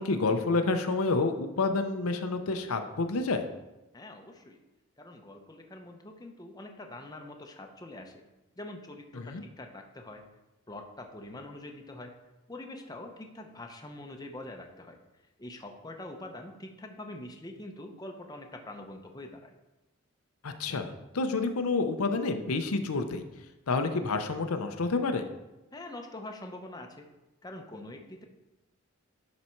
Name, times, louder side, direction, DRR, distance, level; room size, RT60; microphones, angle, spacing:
voice 1, 0.0-3.5 9.1-9.4 20.4-23.2 23.7-25.3, left 3 dB, 85° left, 7 dB, 0.7 m, -29 dB
voice 2, 3.9-4.6 5.0-8.2 8.6-10.2 10.7-12.1 12.5-15.0 15.4-19.5 25.7-27.1 27.4-28.2, left 1 dB, 20° left, 3 dB, 0.7 m, -44 dB
11.0 x 4.2 x 4.4 m, 1.0 s
head